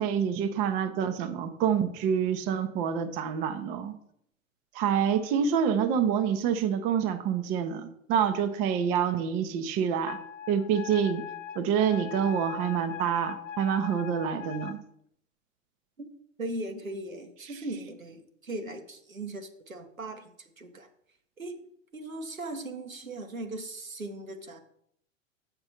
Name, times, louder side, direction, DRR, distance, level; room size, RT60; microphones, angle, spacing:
voice 1, 0.0-3.9 4.7-10.2 10.5-11.2 11.6-14.8, right 8 dB, 20° right, 9 dB, 0.5 m, -27 dB
Wind instrument woodwind instrument, 10.1-14.8, left 9 dB, 70° left, 0.9 m, -40 dB
voice 2, 16.4-20.3 20.6-20.9 21.4-21.6 21.9-24.6, right 2 dB, 85° right, 5 dB, 1.1 m, -38 dB
7.7 x 5.2 x 4.3 m, 0.70 s
figure-of-eight pair, 100°, 40 cm